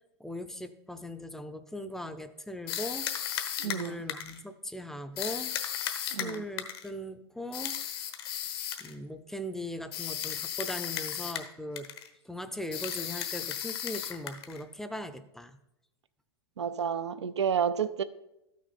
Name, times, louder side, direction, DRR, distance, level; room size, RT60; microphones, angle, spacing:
voice 1, 0.2-3.1 3.6-5.6 6.0-7.8 8.8-11.9 12.3-15.6, left 1 dB, 5° left, 0.6 m, -39 dB
sound 1, 2.7-4.4 5.2-6.9 7.5-8.9 9.9-11.5 11.8-12.1 12.7-14.6, left 10 dB, 65° left, 1.2 m, -35 dB
voice 2, 3.6-4.0 6.1-6.4 16.6-18.0, right 7 dB, 90° right, 0.5 m, -30 dB
13.0 x 6.2 x 4.2 m
hypercardioid pair, 110°, 14 cm